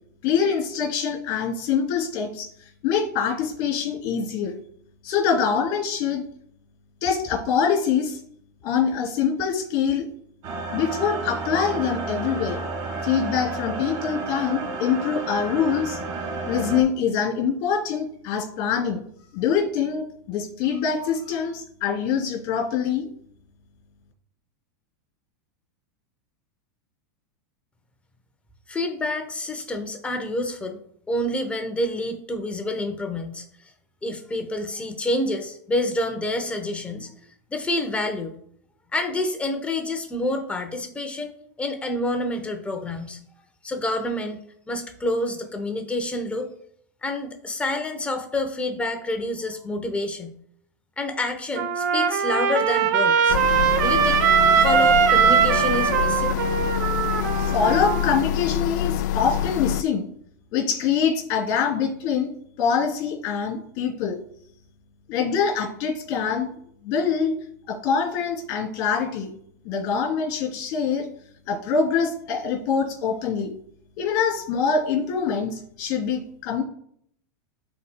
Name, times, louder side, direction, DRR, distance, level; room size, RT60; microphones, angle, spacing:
voice 1, 0.2-4.5 5.0-6.2 7.0-8.2 8.6-10.1 10.7-12.6 13.0-16.0 16.5-19.0 19.3-23.1 57.4-60.1 60.5-62.3 62.6-64.2 65.1-66.5 66.8-67.3 67.7-69.3 69.6-71.1 71.5-73.5 74.0-76.6, left 6 dB, 50° left, 3 dB, 2.9 m, -24 dB
sound 1, 10.4-16.8, right 3 dB, 40° right, 1.4 m, -31 dB
voice 2, 28.7-30.8 31.1-33.4 34.0-37.1 37.5-38.3 38.9-43.2 43.6-46.5 47.0-50.3 51.0-53.4 53.8-56.4, left 1 dB, 10° left, 5 dB, 0.8 m, -28 dB
Trumpet, 51.6-58.2, right 7 dB, 70° right, 0.7 m, -21 dB
sound 2, 53.3-59.8, left 11 dB, 70° left, 0.4 m, -26 dB
12.5 x 4.3 x 2.2 m, 0.67 s
supercardioid pair, 130°, 10 cm